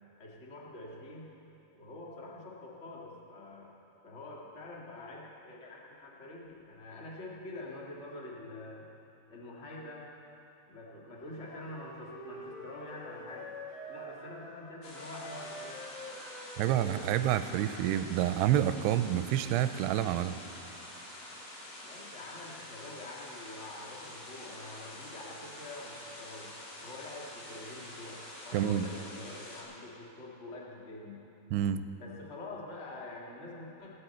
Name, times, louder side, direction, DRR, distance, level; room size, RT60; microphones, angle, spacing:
voice 1, 0.2-1.3 1.7-3.7 4.0-8.8 9.3-10.1 10.7-13.5 13.9-15.8 21.8-26.5 26.8-31.2 32.0-33.9, left 2 dB, 45° left, -3 dB, 0.9 m, -46 dB
Wind instrument woodwind instrument, 11.4-14.4 14.8-18.3, equal, 10° right, 4.0 m, -46 dB
sound 1, 14.8-29.6, left 1 dB, 70° left, 4.9 m, -47 dB
voice 2, 16.6-20.4 28.5-28.9 31.5-31.8, right 11 dB, 85° right, 11 dB, 2.6 m, -28 dB
17.5 x 16.5 x 4.4 m, 2.9 s
omnidirectional pair, 4.8 m